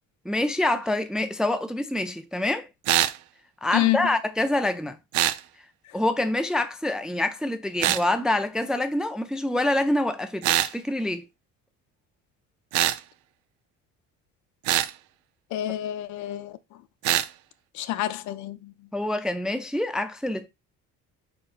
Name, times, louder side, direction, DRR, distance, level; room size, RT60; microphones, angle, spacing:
voice 1, 0.3-2.7 3.6-5.0 5.9-11.2 18.9-20.5, left 1 dB, ahead, 0.3 m, -26 dB
sound 1, 2.9-3.2 5.1-5.4 7.8-8.0 10.4-10.7 12.7-13.0 14.7-14.9 17.0-17.3, right 14 dB, 75° right, 0.5 m, -23 dB
voice 2, 3.7-4.2 15.5-16.6 17.7-18.7, left 14 dB, 65° left, 0.5 m, -28 dB
4.4 x 4.3 x 2.4 m
cardioid pair, 110°, 31 cm